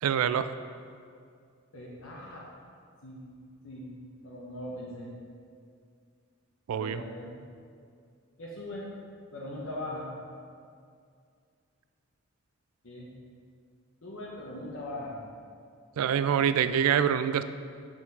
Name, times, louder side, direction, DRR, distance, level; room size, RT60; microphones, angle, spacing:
voice 1, 0.0-0.5 6.7-7.0 16.0-17.4, right 8 dB, 85° right, 12 dB, 0.3 m, -25 dB
voice 2, 1.7-2.4 3.0-3.3 3.6-3.9 4.2-5.1 6.7-7.4 8.4-8.9 9.3-10.1 12.8-13.1 14.0-15.2, left 1 dB, 65° left, -5 dB, 1.1 m, -40 dB
6.5 x 4.5 x 5.5 m, 2.3 s
head